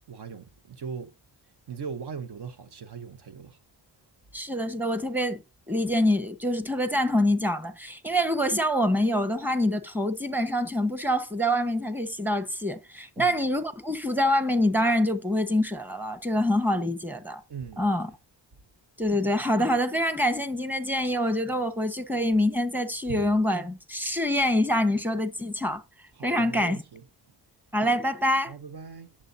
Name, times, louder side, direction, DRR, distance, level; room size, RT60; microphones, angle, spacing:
voice 1, 0.1-1.1 1.7-3.6 13.2-13.4 17.5-17.8 23.1-23.2 26.1-27.0 28.5-29.1, right 6 dB, 65° right, 1.0 m, -39 dB
voice 2, 4.3-5.4 5.7-17.4 17.8-18.1 19.0-25.8 26.2-26.8 27.7-28.5, left 1 dB, 5° right, 1.2 m, -25 dB
11.0 x 7.3 x 2.7 m
cardioid pair, 65°, 43 cm